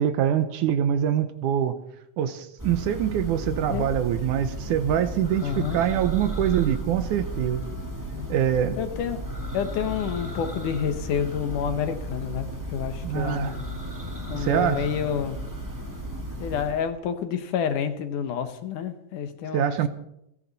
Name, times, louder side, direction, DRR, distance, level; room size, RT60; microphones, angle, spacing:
voice 1, 0.0-1.8 2.2-7.6 8.3-8.8 13.0-13.6 14.3-14.9 19.5-19.9, right 9 dB, 75° right, 10 dB, 2.2 m, -24 dB
Church bell, 2.6-16.9, right 1 dB, 10° right, 1.3 m, -34 dB
voice 2, 5.4-5.8 8.1-8.3 8.8-9.2 9.5-13.6 14.3-15.4 16.4-19.9, left 8 dB, 70° left, 8 dB, 2.6 m, -29 dB
30.0 x 10.5 x 4.1 m, 0.79 s
omnidirectional pair, 3.9 m